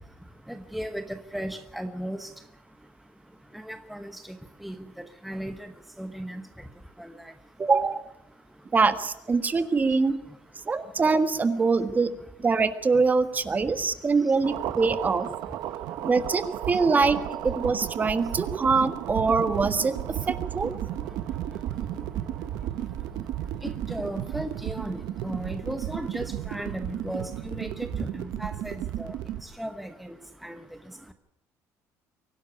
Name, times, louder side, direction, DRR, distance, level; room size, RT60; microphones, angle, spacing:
voice 1, 0.7-2.3 3.7-4.2 4.6-5.7 6.0-6.4 7.0-7.1 23.6-29.1 29.6-30.2 30.4-30.6, right 1 dB, ahead, 7 dB, 1.1 m, -35 dB
voice 2, 7.6-8.0 8.7-10.2 10.7-15.3 16.0-17.2 17.4-20.7, right 4 dB, 25° right, 10 dB, 1.5 m, -24 dB
sound 1, 14.4-29.4, right 12 dB, 75° right, 1.1 m, -33 dB
23.5 x 12.0 x 9.8 m, 0.89 s
cardioid pair, 120°, 7 cm